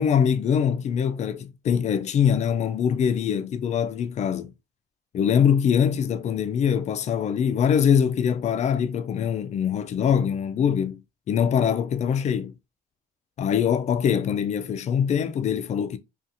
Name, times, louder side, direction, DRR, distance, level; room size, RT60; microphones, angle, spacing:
voice 1, 0.0-4.5 5.1-11.0 11.3-12.5 13.4-16.0, left 8 dB, 40° left, 0.4 m, -23 dB
2.5 x 2.3 x 2.8 m
cardioid pair, 110°, 17 cm